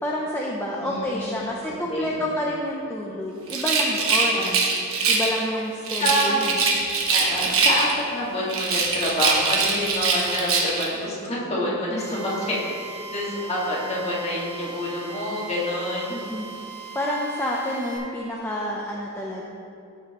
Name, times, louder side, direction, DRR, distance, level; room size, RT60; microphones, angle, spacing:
voice 1, 0.0-4.6 5.1-6.6 16.1-16.5 16.9-19.4, left 1 dB, 10° left, -3 dB, 0.5 m, -29 dB
voice 2, 0.8-1.5 1.9-2.2 4.3-4.5 6.0-6.5 7.1-12.6 12.9-16.2, left 1 dB, 30° left, -6 dB, 1.8 m, -27 dB
Rattle, 3.5-5.4 5.8-8.1 8.5-10.9, right 4 dB, 65° right, 1.2 m, -23 dB
Drill, 12.0-18.0, right 3 dB, 45° right, 1.5 m, -39 dB
14.0 x 5.6 x 3.0 m, 2.7 s
head